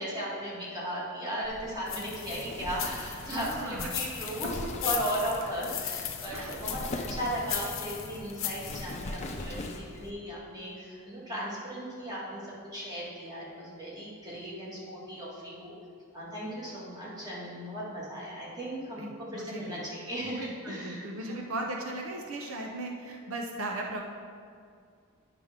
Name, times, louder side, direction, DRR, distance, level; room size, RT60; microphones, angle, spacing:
voice 1, 0.0-12.4 12.7-15.7 16.1-21.3 22.5-22.6, equal, 20° right, -7 dB, 1.9 m, -36 dB
Wind, 1.4-10.1, left 2 dB, 35° left, 0.5 m, -42 dB
sound 1, 1.9-9.0, left 8 dB, 70° left, 0.8 m, -38 dB
voice 2, 3.3-3.9 6.3-6.5 19.0-19.8 20.3-24.0, right 2 dB, 80° right, 1 dB, 0.7 m, -37 dB
9.5 x 5.8 x 3.7 m, 2.2 s
head